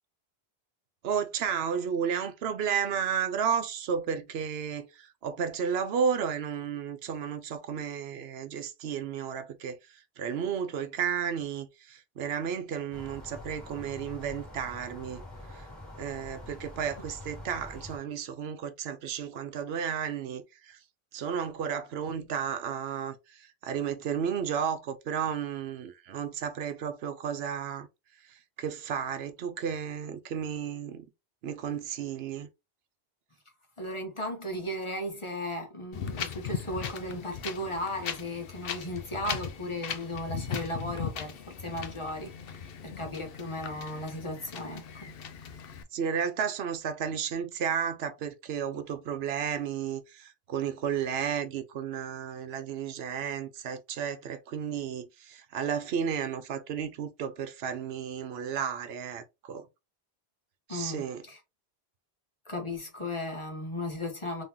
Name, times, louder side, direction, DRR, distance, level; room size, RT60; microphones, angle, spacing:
voice 1, 1.0-15.2 15.5-15.7 16.0-20.8 21.1-27.9 28.2-31.1 31.4-32.5 45.9-59.7 60.7-61.2, right 7 dB, 80° right, 0.9 m, -33 dB
sound 1, 12.9-18.0, left 1 dB, ahead, 1.9 m, -45 dB
voice 2, 33.8-45.1 60.7-61.4 62.5-64.4, left 1 dB, 30° left, 1.0 m, -36 dB
Wind, 35.9-45.8, left 7 dB, 70° left, 0.8 m, -38 dB
3.7 x 3.0 x 2.8 m
omnidirectional pair, 1.0 m